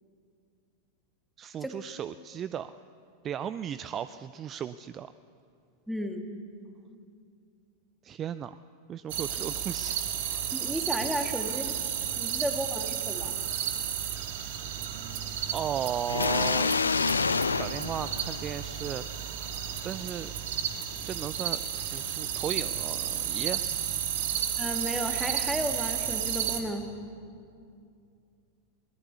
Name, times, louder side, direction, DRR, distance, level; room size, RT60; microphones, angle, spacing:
voice 1, 1.4-2.8 3.2-5.1 8.0-8.6 8.9-10.0 11.4-11.5 15.5-16.7 17.6-19.0 19.8-20.3 21.0-23.6, right 9 dB, 25° right, 14 dB, 0.5 m, -35 dB
voice 2, 5.9-6.3 10.5-11.7 12.2-13.4 24.6-26.9, equal, ahead, 4 dB, 2.2 m, -33 dB
sound 1, 9.1-26.6, right 9 dB, 55° right, 2.1 m, -32 dB
sound 2, 16.1-18.9, left 4 dB, 75° left, 0.5 m, -28 dB
22.0 x 19.5 x 8.4 m, 2.4 s
figure-of-eight pair, 90°, 0 cm